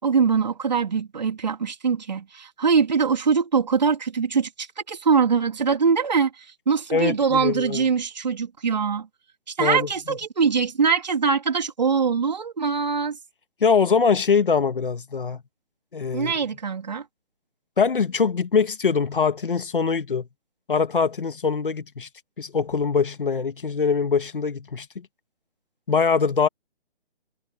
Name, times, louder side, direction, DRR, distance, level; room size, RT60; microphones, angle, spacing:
voice 1, 0.0-9.1 9.5-13.2 16.1-17.0, right 5 dB, 45° right, 3.4 m, -23 dB
voice 2, 6.9-7.8 9.6-9.9 13.6-15.4 15.9-16.3 17.8-20.3 20.7-22.1 22.4-25.1 25.9-26.5, left 5 dB, 55° left, 1.9 m, -23 dB
hypercardioid pair, 180°, 31 cm